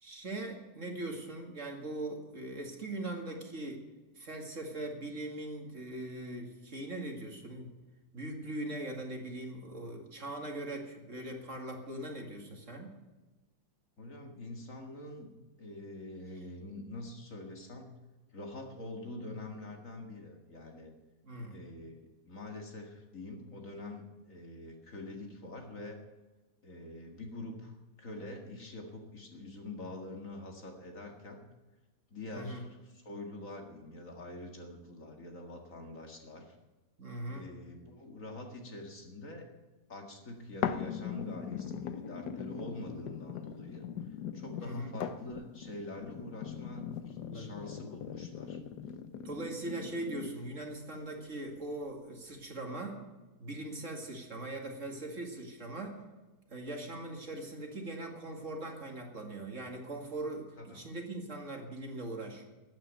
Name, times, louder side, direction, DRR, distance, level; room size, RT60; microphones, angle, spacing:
voice 1, 0.0-3.8 4.2-7.7 8.1-12.9 21.2-21.6 32.3-32.6 37.0-37.5 44.6-44.9 47.2-47.5 49.2-53.0 53.4-56.0 56.5-62.4, right 2 dB, 50° right, 2 dB, 2.5 m, -40 dB
voice 2, 14.0-15.3 15.6-17.9 18.3-20.9 21.5-26.0 26.6-31.4 32.1-36.6 37.3-39.5 39.9-43.8 44.3-48.6 60.6-60.8, left 2 dB, 50° left, 2 dB, 2.3 m, -45 dB
sound 1, 40.6-50.6 51.2-51.3, left 8 dB, 80° left, 1.4 m, -40 dB
13.5 x 9.2 x 9.1 m, 1.2 s
omnidirectional pair, 1.8 m